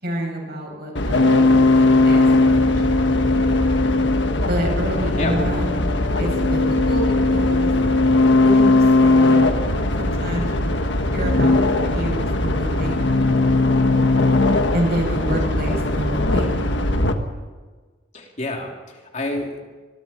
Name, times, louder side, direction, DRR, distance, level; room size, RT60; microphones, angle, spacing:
voice 1, 0.0-2.8 4.4-5.8 6.2-6.6 6.9-7.7 8.4-9.6 10.0-10.8 11.1-13.3 14.7-16.7, equal, 55° right, 0 dB, 7.2 m, -28 dB
sound 1, 1.0-17.1, left 2 dB, 75° left, 1.5 m, -18 dB
voice 2, 18.1-19.7, left 2 dB, 40° left, 1 dB, 3.4 m, -29 dB
27.5 x 21.5 x 4.5 m, 1.4 s
head